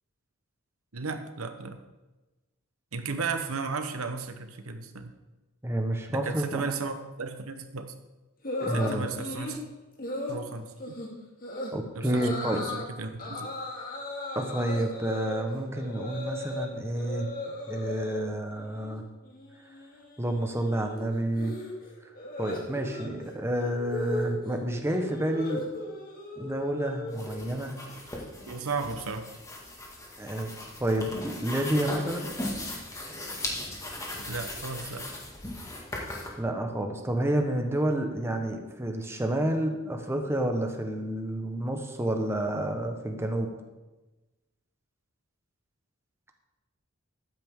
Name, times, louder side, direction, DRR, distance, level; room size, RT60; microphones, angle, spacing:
voice 1, 0.9-1.8 2.9-5.1 6.1-7.9 8.7-9.6 10.3-10.9 11.9-13.5 28.5-29.3 34.3-35.0, right 4 dB, 85° right, 8 dB, 1.0 m, -35 dB
voice 2, 5.6-6.7 8.6-9.1 11.7-12.6 14.3-17.3 17.7-19.0 20.2-21.5 22.4-25.7 26.4-27.8 30.2-30.5 30.8-32.3 36.4-43.5, right 1 dB, 10° right, 3 dB, 1.1 m, -29 dB
sound 1, 8.4-9.6 10.0-10.4 10.8-11.1 11.4-11.7 12.0-12.8 13.2-16.7 16.9-18.2 18.6-19.0 19.2-27.4, left 1 dB, 45° left, 2.1 m, -37 dB
sound 2, 27.1-36.3, left 1 dB, 15° left, 1.8 m, -38 dB
13.0 x 9.4 x 3.7 m, 1.1 s
head